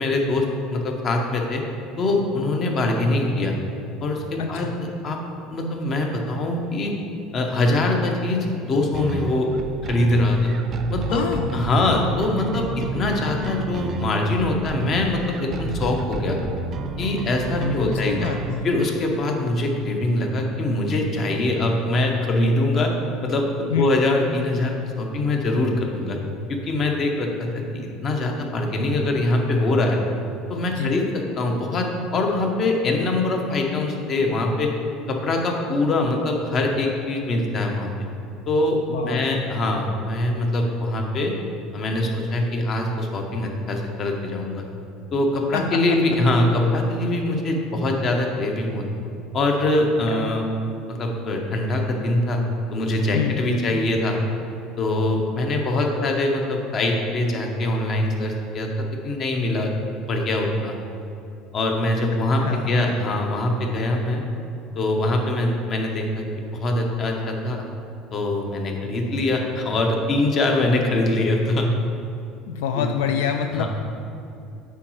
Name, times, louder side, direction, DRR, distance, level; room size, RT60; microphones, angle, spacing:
voice 1, 0.0-1.6 2.0-3.5 4.0-4.7 5.0-7.0 7.3-9.5 9.9-10.5 10.9-11.2 11.5-16.4 17.0-18.1 18.6-22.9 23.2-26.2 26.5-30.0 30.5-34.7 35.1-37.9 38.5-41.3 41.7-44.6 45.1-48.9 49.3-50.4 50.9-52.4 52.7-54.2 54.8-59.7 60.1-60.8 61.5-64.2 64.7-66.2 66.5-67.6 68.1-71.7 72.7-72.9 73.5-73.7, left 2 dB, 40° left, 2 dB, 0.9 m, -23 dB
voice 2, 4.4-4.7 11.1-11.5 17.6-18.7 23.7-24.0 30.7-31.0 38.9-39.3 45.5-45.8 50.0-50.3 53.1-53.4 62.4-62.7 72.5-73.7, left 8 dB, 85° left, 5 dB, 0.3 m, -26 dB
sound 1, 8.9-18.6, right 3 dB, 40° right, 0.5 m, -31 dB
8.3 x 4.7 x 3.1 m, 2.6 s
supercardioid pair, 110°, 0 cm